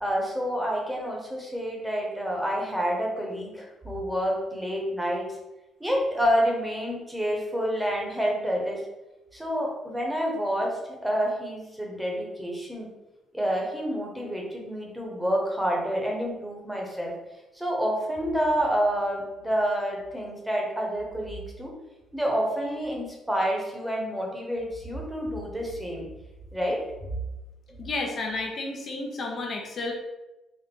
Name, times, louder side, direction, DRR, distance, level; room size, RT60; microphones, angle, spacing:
voice 1, 0.0-5.3 5.8-8.8 9.3-12.9 13.3-17.1 17.5-21.7 22.1-26.1 26.5-26.8, equal, 5° right, -1 dB, 1.1 m, -28 dB
voice 2, 27.8-29.9, left 3 dB, 50° left, 0 dB, 0.7 m, -31 dB
4.1 x 2.5 x 3.7 m, 1.0 s
cardioid pair, 95°, 0 cm